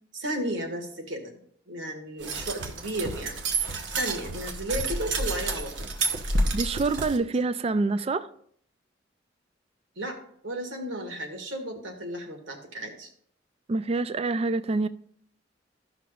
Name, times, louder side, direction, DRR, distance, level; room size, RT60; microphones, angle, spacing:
voice 1, 0.1-1.4 1.7-3.4 3.9-5.9 9.9-10.2 10.4-13.1, right 1 dB, 90° right, 1.7 m, -34 dB
sound 1, 2.2-7.2, right 2 dB, 70° right, 1.0 m, -30 dB
voice 2, 6.5-8.3 13.7-14.9, right 3 dB, 35° right, 0.4 m, -26 dB
14.5 x 5.8 x 2.4 m
head